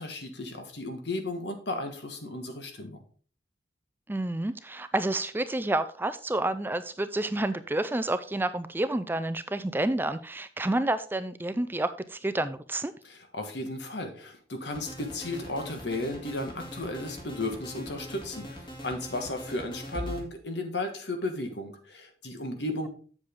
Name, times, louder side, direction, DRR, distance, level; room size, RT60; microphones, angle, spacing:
voice 1, 0.0-3.0 13.0-22.9, left 2 dB, 70° left, 6 dB, 1.6 m, -34 dB
voice 2, 4.1-12.9, right 1 dB, 10° right, 13 dB, 0.4 m, -29 dB
sound 1, 14.7-20.2, equal, 25° left, 2.1 m, -41 dB
7.6 x 7.6 x 3.7 m, 0.41 s
head